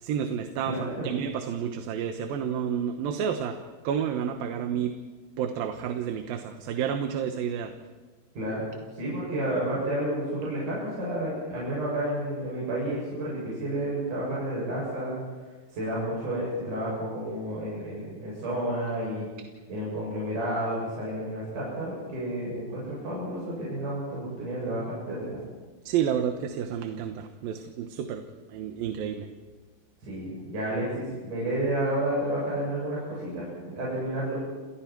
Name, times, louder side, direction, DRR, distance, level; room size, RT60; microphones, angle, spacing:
voice 1, 0.0-0.8 1.0-3.6 3.8-5.0 5.4-7.7 25.9-28.2 28.5-29.3, right 8 dB, 80° right, 6 dB, 2.9 m, -30 dB
voice 2, 0.7-1.1 8.3-8.6 8.9-15.2 15.7-19.3 19.7-25.3 30.0-34.4, right 1 dB, 60° right, -7 dB, 9.1 m, -31 dB
30.0 x 28.5 x 4.6 m, 1.4 s
omnidirectional pair, 4.1 m